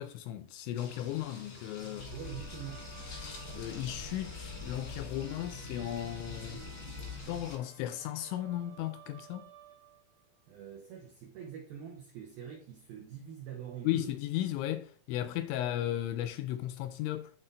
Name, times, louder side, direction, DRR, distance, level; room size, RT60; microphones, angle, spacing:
voice 1, 0.0-2.1 3.5-6.6 7.3-9.5 13.8-17.3, left 12 dB, 85° left, 2.6 m, -35 dB
sound 1, 0.7-7.6, left 3 dB, 65° left, 1.4 m, -50 dB
Musical instrument, 1.0-10.2, right 4 dB, 65° right, 3.1 m, -54 dB
sound 2, 2.0-7.5, left 3 dB, 40° right, 1.3 m, -45 dB
voice 2, 2.1-2.9 10.5-14.2, right 8 dB, 85° right, 2.1 m, -44 dB
11.0 x 4.2 x 3.8 m
omnidirectional pair, 5.8 m